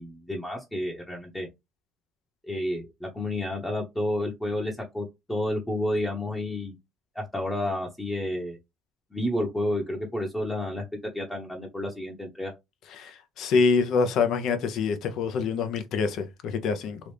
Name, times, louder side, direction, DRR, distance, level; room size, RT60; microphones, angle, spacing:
voice 1, 0.0-1.5 2.4-6.8 7.1-8.6 9.1-10.8 11.1-12.5, left 1 dB, 10° left, 0.9 m, -30 dB
voice 2, 13.0-17.0, left 5 dB, 65° left, 0.7 m, -25 dB
3.0 x 2.5 x 3.4 m
supercardioid pair, 85°, 0 cm